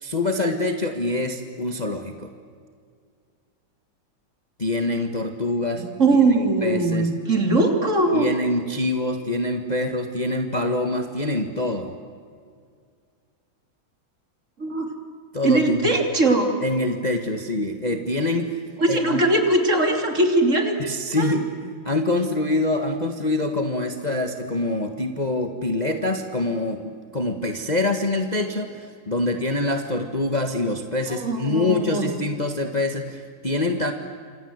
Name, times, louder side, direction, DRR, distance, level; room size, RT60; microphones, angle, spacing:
voice 1, 0.0-2.3 4.6-5.8 6.1-7.1 8.1-11.9 15.3-15.9 16.6-18.6 18.9-19.2 20.8-33.9, left 2 dB, 25° left, 5 dB, 1.5 m, -25 dB
voice 2, 5.7-8.3 14.6-14.9 15.4-16.5 18.8-20.7 21.2-21.3 31.2-32.1, right 2 dB, 35° right, 4 dB, 3.5 m, -20 dB
28.5 x 26.0 x 8.1 m, 2.1 s
omnidirectional pair, 2.2 m